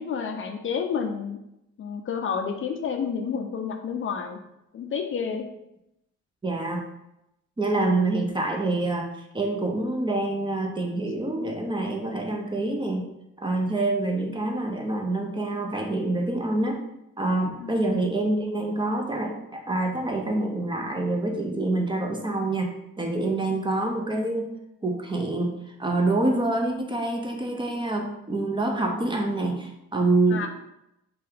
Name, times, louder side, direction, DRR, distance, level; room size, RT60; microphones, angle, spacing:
voice 1, 0.0-1.4 1.8-4.4 4.7-5.4 17.6-17.8 30.3-30.5, left 6 dB, 45° left, 4 dB, 0.4 m, -30 dB
voice 2, 6.4-6.8 7.6-9.1 9.3-13.0 13.4-16.8 17.2-24.5 24.8-30.5, right 2 dB, 15° right, 1 dB, 0.5 m, -26 dB
2.7 x 2.3 x 3.4 m, 0.84 s
cardioid pair, 90°, 30 cm